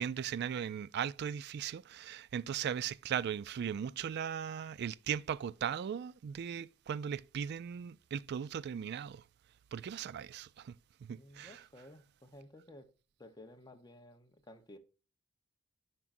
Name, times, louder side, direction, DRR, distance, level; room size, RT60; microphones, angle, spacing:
voice 1, 0.0-9.2 9.7-10.7 11.1-11.6, right 8 dB, 55° right, 0.3 m, -38 dB
voice 2, 11.1-12.9 13.2-14.8, left 1 dB, 20° left, 0.9 m, -55 dB
11.0 x 6.0 x 2.6 m
head